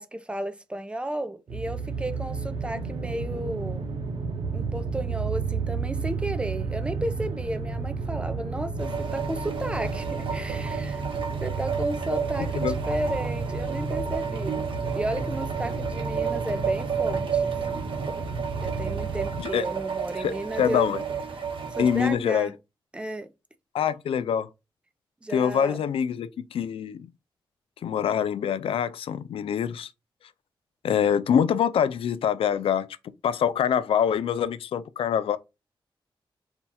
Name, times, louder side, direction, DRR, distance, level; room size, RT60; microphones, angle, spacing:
voice 1, 0.0-3.8 4.5-11.0 11.4-14.6 14.9-17.9 18.6-20.9 21.8-22.5 22.9-23.3 25.2-25.8, right 1 dB, 10° right, 0.6 m, -33 dB
sound 1, 1.5-19.4, right 4 dB, 85° right, 0.7 m, -32 dB
sound 2, 8.8-22.1, right 7 dB, 65° right, 1.1 m, -32 dB
voice 2, 20.2-21.0 21.8-22.5 23.7-24.5 25.3-27.1 27.8-29.9 30.8-32.9 33.2-35.4, left 8 dB, 85° left, 0.4 m, -25 dB
4.5 x 2.3 x 4.1 m
cardioid pair, 85°, 9 cm